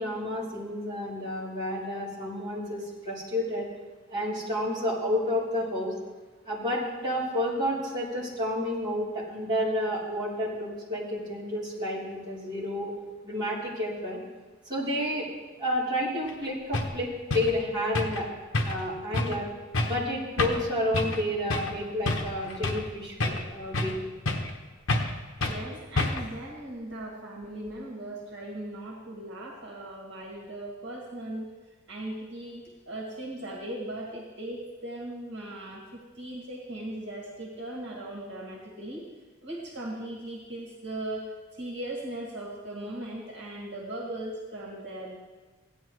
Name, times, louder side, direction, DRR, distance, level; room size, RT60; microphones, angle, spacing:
voice 1, 0.0-3.7 4.1-5.9 6.4-12.9 13.2-14.2 14.6-15.3 15.6-18.3 18.6-19.5 19.8-24.0, left 1 dB, 20° right, -8 dB, 3.5 m, -30 dB
sound 1, 16.3-16.4 16.7-16.9 17.3-17.5 17.9-18.2 18.5-18.9 19.1-19.4 19.7-20.0 20.4-20.7 20.9-21.2 21.5-21.7 22.1-22.9 23.2-24.0 24.3-24.6 24.9-25.1 25.4-25.6 26.0-26.3, left 2 dB, 75° left, 1.1 m, -28 dB
voice 2, 25.4-31.5 31.9-39.1 39.4-45.2, right 1 dB, 60° right, -4 dB, 2.2 m, -38 dB
16.5 x 9.9 x 3.2 m, 1.3 s
head